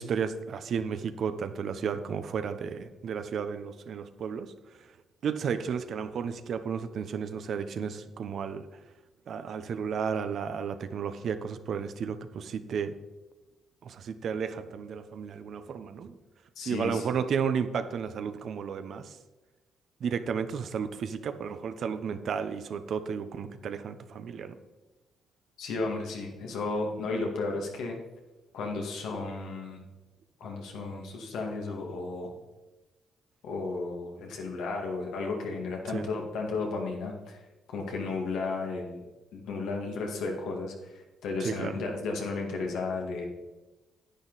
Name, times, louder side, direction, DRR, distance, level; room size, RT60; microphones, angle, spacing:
voice 1, 0.0-4.5 5.2-8.7 9.3-12.9 13.8-16.2 16.6-19.1 20.0-24.6 35.9-36.1 41.4-41.8, right 6 dB, 60° right, 10 dB, 0.8 m, -33 dB
voice 2, 16.6-17.1 25.6-28.0 28.5-29.8 30.4-32.3 33.4-37.4 37.7-39.0 39.3-40.7 41.2-43.2, left 3 dB, 80° left, 0 dB, 2.2 m, -33 dB
10.0 x 9.1 x 4.1 m, 1.1 s
cardioid pair, 90°, 0 cm